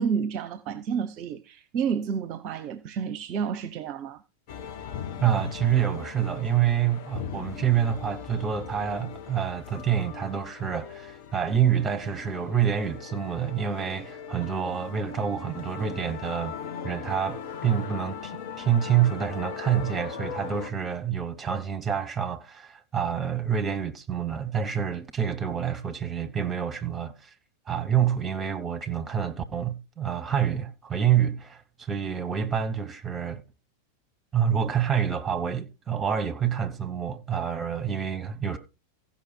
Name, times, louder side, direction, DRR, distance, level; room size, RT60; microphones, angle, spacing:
voice 1, 0.0-4.2, right 7 dB, 40° right, 0.7 m, -30 dB
sound 1, 4.5-20.7, left 7 dB, 50° left, 1.1 m, -39 dB
voice 2, 5.2-16.5 16.8-27.3 27.7-33.4 34.3-38.6, right 8 dB, 15° right, 1.3 m, -27 dB
15.5 x 5.8 x 4.5 m
figure-of-eight pair, 90°, 0 cm